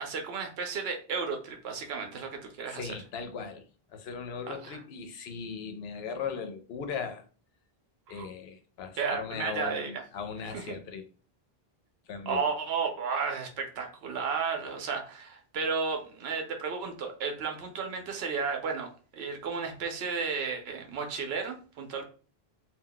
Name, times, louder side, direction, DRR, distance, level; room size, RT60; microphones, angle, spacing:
voice 1, 0.0-2.9 4.5-4.8 8.1-8.3 9.0-10.0 10.5-10.8 12.3-22.0, right 5 dB, 90° right, 0.8 m, -33 dB
voice 2, 2.7-7.2 8.1-11.1 12.1-12.4, left 6 dB, 80° left, 0.8 m, -38 dB
2.3 x 2.2 x 3.7 m
omnidirectional pair, 1.0 m